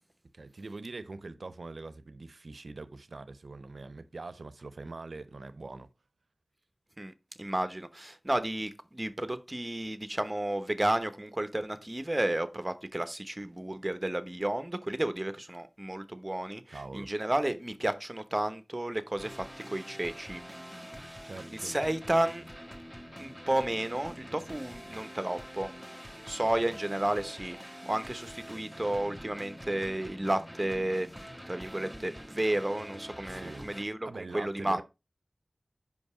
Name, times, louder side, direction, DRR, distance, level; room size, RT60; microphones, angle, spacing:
voice 1, 0.3-5.9 16.7-17.1 21.2-21.8 24.9-25.1 33.2-34.8, right 3 dB, 80° right, 0.6 m, -43 dB
voice 2, 7.4-20.4 21.5-22.4 23.2-25.7 26.2-27.6 27.9-31.1 31.5-34.8, right 1 dB, 25° right, 0.9 m, -32 dB
sound 1, 19.2-33.8, equal, 5° left, 1.2 m, -45 dB
5.3 x 5.3 x 4.9 m
wide cardioid pair, 60°, 0 cm